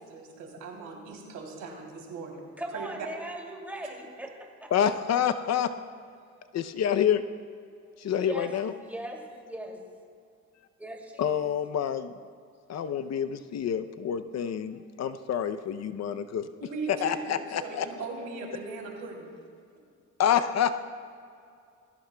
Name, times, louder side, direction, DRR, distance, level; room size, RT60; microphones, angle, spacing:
voice 1, 0.0-3.1 3.8-4.0 16.6-19.3, right 4 dB, 80° right, 0 dB, 3.2 m, -39 dB
voice 2, 2.6-4.9 8.2-9.9 10.8-11.4, right 1 dB, 5° right, 0 dB, 2.5 m, -39 dB
voice 3, 4.7-5.7 6.5-7.2 8.0-8.8 11.2-12.1 12.7-16.5 16.8-18.1 20.2-20.8, left 9 dB, 60° left, 10 dB, 0.7 m, -27 dB
20.5 x 16.5 x 2.3 m, 2.3 s
cardioid pair, 90°, 30 cm